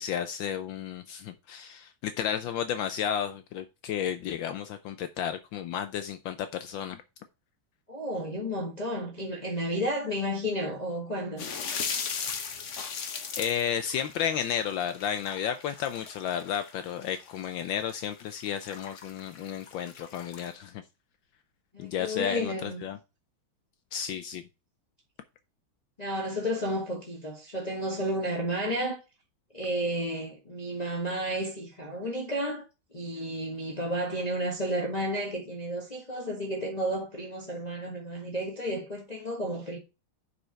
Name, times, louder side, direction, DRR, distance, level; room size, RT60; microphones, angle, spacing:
voice 1, 0.0-7.0 13.4-20.8 21.8-23.0 23.9-24.4, left 9 dB, 75° left, 1.3 m, -32 dB
voice 2, 7.9-11.5 21.7-22.8 26.0-29.0 29.5-32.6 32.9-39.8, equal, 20° left, 1.5 m, -32 dB
sound 1, 11.4-20.5, left 6 dB, 50° left, 1.0 m, -38 dB
5.6 x 5.4 x 6.4 m
omnidirectional pair, 2.2 m